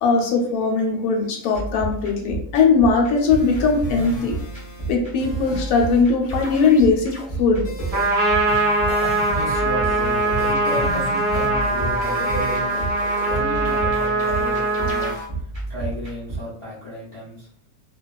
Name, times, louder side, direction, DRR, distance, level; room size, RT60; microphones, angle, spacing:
voice 1, 0.0-4.3 4.9-7.1 7.4-7.6, left 4 dB, 80° left, 0 dB, 1.1 m, -19 dB
sound 1, 1.5-16.4, right 3 dB, 20° right, 0.8 m, -32 dB
sound 2, 3.3-4.9 5.2-6.0 6.3-7.3 7.6-15.3, equal, 60° left, 0.9 m, -35 dB
Trumpet, 7.9-15.1, right 2 dB, 70° right, 1.0 m, -22 dB
voice 2, 9.3-12.7 13.2-17.5, equal, 35° left, -10 dB, 0.4 m, -33 dB
2.4 x 2.3 x 2.2 m, 0.63 s
omnidirectional pair, 1.6 m